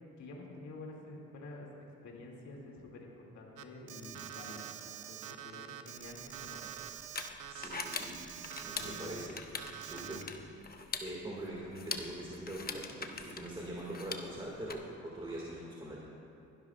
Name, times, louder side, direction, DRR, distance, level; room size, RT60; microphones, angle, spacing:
voice 1, 0.2-1.7 2.0-6.6 8.8-9.2 10.0-10.4, left 2 dB, 70° left, -2 dB, 2.4 m, -49 dB
Alarm, 3.6-9.3 9.6-10.2, right 11 dB, 80° right, 0.7 m, -46 dB
sound 1, 6.0-14.7, left 4 dB, 30° left, 0.9 m, -43 dB
voice 2, 7.5-8.2 8.6-9.4 9.8-10.2 11.0-16.0, right 1 dB, 15° right, -4 dB, 1.9 m, -43 dB
21.5 x 12.0 x 2.4 m, 2.8 s
cardioid pair, 90°, 30 cm